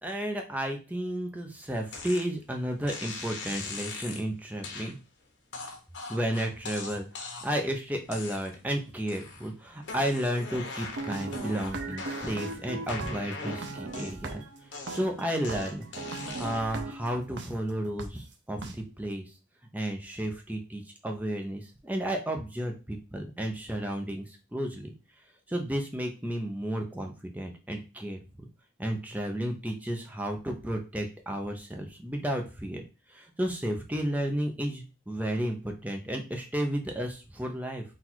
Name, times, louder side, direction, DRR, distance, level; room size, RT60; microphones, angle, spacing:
voice 1, 0.0-5.0 6.1-14.4 14.9-15.9 16.2-19.3 19.7-24.9 25.5-28.2 28.8-37.8, right 1 dB, 10° right, 3 dB, 0.6 m, -32 dB
sound 1, 1.9-2.3 2.9-4.2 4.6-4.9 5.5-7.6 8.1-8.7 9.1-9.5 9.8-12.5 12.9-14.3 14.7-16.7, left 4 dB, 80° left, 1.1 m, -41 dB
sound 2, 10.8-17.5 18.0-18.1 18.6-18.7, right 3 dB, 75° right, 0.7 m, -39 dB
4.0 x 2.5 x 4.5 m, 0.31 s
head